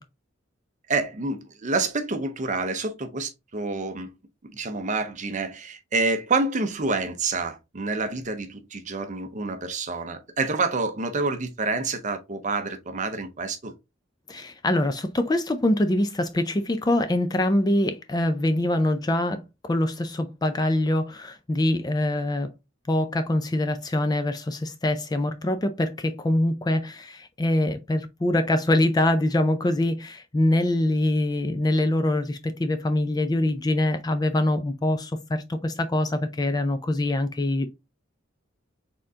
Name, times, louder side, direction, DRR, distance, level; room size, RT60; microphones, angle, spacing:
voice 1, 0.9-4.1 4.4-13.7, right 3 dB, 40° right, 0.7 m, -28 dB
voice 2, 14.3-22.5 22.9-37.7, left 1 dB, 20° left, 0.4 m, -24 dB
4.4 x 3.7 x 2.8 m
head